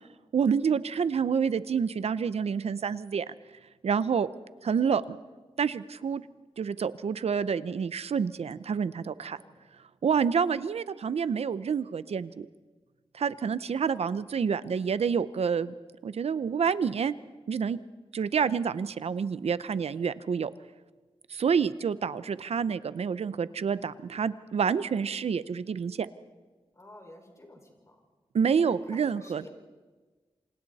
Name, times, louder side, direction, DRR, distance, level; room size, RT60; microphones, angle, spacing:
voice 1, 0.3-3.3 3.8-4.3 4.6-5.2 5.6-6.2 6.6-9.4 10.0-12.5 13.1-15.7 16.0-17.1 17.5-17.8 18.1-20.5 21.3-26.1 28.3-29.5, right 6 dB, 80° right, 15 dB, 0.8 m, -28 dB
voice 2, 9.2-9.6 26.7-28.0 28.6-29.5, left 1 dB, 30° left, 1 dB, 5.3 m, -51 dB
27.5 x 27.0 x 4.2 m, 1.3 s
wide cardioid pair, 105°, 11 cm